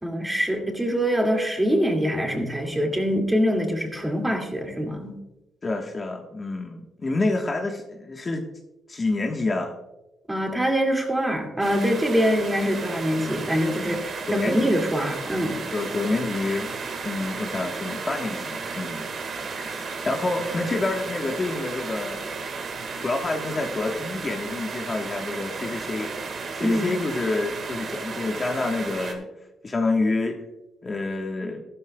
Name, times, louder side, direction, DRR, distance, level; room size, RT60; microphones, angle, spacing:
voice 1, 0.0-5.2 10.3-15.6 26.6-27.0, equal, 10° right, 2 dB, 2.2 m, -24 dB
voice 2, 5.6-8.4 8.9-9.7 14.3-14.7 15.7-16.7 17.0-19.0 19.5-22.2 23.0-26.1 26.5-29.3 29.6-30.4 30.8-31.6, left 3 dB, 30° left, 2 dB, 1.3 m, -28 dB
sound 1, 11.6-29.1, right 4 dB, 55° right, 1.7 m, -34 dB
14.0 x 12.5 x 2.3 m, 0.99 s
cardioid pair, 90°, 0 cm